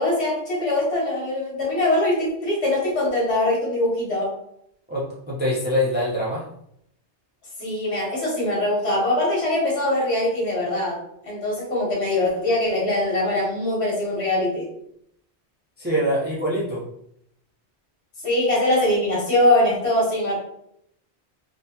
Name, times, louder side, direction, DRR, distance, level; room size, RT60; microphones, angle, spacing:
voice 1, 0.0-4.3 7.6-11.0 11.2-14.7 18.2-20.4, left 1 dB, 70° left, -4 dB, 1.6 m, -22 dB
voice 2, 4.9-6.5 15.8-16.8, equal, 10° right, -6 dB, 0.6 m, -24 dB
3.7 x 2.5 x 2.8 m, 0.73 s
omnidirectional pair, 1.1 m